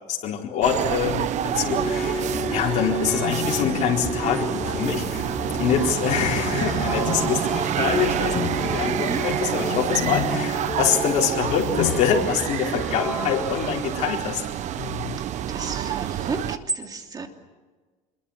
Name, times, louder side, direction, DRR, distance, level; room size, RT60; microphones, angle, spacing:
voice 1, 0.1-14.4, left 7 dB, 50° left, -2 dB, 4.3 m, -25 dB
sound 1, 0.6-16.6, right 10 dB, 50° right, 1.2 m, -28 dB
sound 2, 1.5-2.2 3.0-5.7 6.4-12.6 12.9-13.0 14.8-15.2, left 16 dB, 75° left, 1.0 m, -35 dB
sound 3, 1.6-13.7, equal, 5° left, 4.3 m, -32 dB
voice 2, 15.2-17.3, right 4 dB, 25° right, 4 dB, 3.0 m, -32 dB
26.5 x 22.5 x 7.3 m, 1.4 s
cardioid pair, 130°, 16 cm